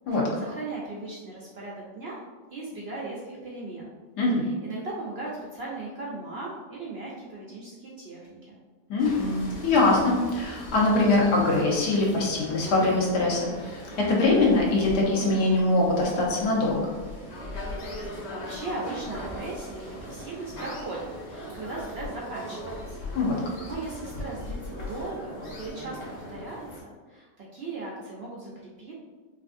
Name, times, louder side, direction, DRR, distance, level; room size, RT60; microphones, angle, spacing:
voice 1, 0.1-2.2 2.5-3.9 4.3-8.6 18.0-23.1 23.4-28.9, right 2 dB, 70° right, -4 dB, 0.6 m, -38 dB
voice 2, 8.9-13.5 14.0-16.9 23.1-23.3, left 2 dB, 75° left, -3 dB, 1.5 m, -23 dB
sound 1, 9.0-26.8, equal, 45° left, 1.0 m, -39 dB
5.1 x 2.5 x 2.5 m, 1.4 s
omnidirectional pair, 1.8 m